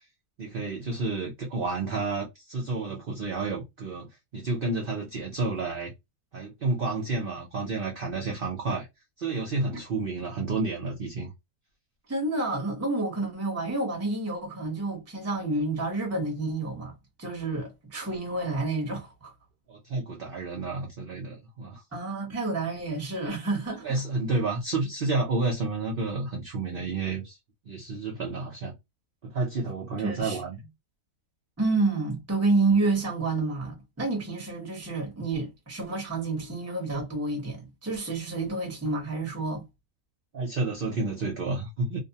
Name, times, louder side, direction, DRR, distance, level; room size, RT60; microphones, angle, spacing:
voice 1, 0.4-5.9 6.3-8.9 9.2-11.3 19.7-21.8 23.8-27.4 27.7-28.7 29.2-30.6 40.3-42.0, right 3 dB, 50° right, 0.6 m, -30 dB
voice 2, 12.1-19.3 21.9-24.0 30.0-30.4 31.6-39.6, right 3 dB, 15° right, 0.7 m, -29 dB
2.5 x 2.1 x 2.7 m
omnidirectional pair, 1.5 m